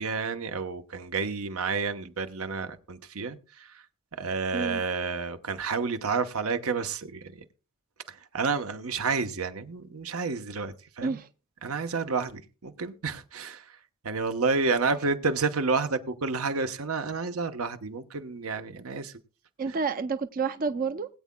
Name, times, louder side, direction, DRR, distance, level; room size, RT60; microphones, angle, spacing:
voice 1, 0.0-3.8 4.2-7.4 8.1-11.2 11.6-13.8 14.0-19.1, right 4 dB, 85° right, 0.9 m, -30 dB
voice 2, 19.6-21.1, right 5 dB, 40° right, 0.4 m, -29 dB
20.5 x 8.4 x 2.2 m
head